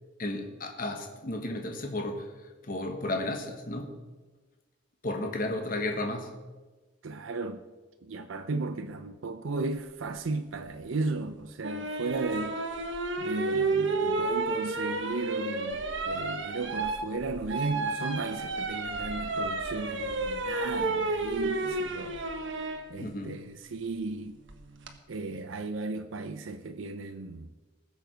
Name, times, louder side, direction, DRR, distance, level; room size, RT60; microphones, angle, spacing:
voice 1, 0.2-2.3 2.6-3.9 5.0-6.3 23.0-23.4, left 2 dB, 45° left, 1.4 m, -33 dB
voice 2, 7.0-7.7 8.0-12.6 13.2-22.2 22.9-24.4 25.1-27.5, right 3 dB, 90° right, 0.6 m, -35 dB
sound 1, 11.6-22.8 24.5-24.9, right 3 dB, 70° right, 1.3 m, -31 dB
19.5 x 7.2 x 5.1 m
head